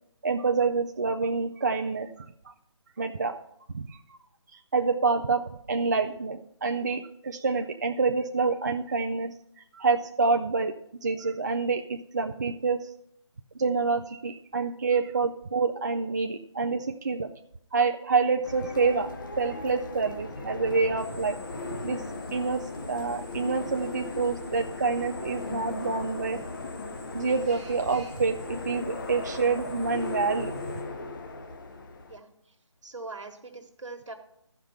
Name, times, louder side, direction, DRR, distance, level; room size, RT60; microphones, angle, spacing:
voice 1, 0.2-2.3 3.0-3.3 3.7-4.0 4.7-9.3 9.7-10.7 11.0-12.9 13.6-17.3 17.7-19.1 19.4-21.4 21.8-22.0 22.3-26.4 27.1-30.5, right 4 dB, 35° right, 4 dB, 0.3 m, -27 dB
sound 1, 18.4-32.2, left 3 dB, 40° left, 0.9 m, -37 dB
Drill, 21.0-30.8, left 1 dB, 5° left, 1.2 m, -54 dB
voice 2, 32.8-34.1, right 3 dB, 75° right, 5 dB, 1.5 m, -41 dB
12.5 x 5.1 x 5.6 m, 0.76 s
figure-of-eight pair, 160°, 16 cm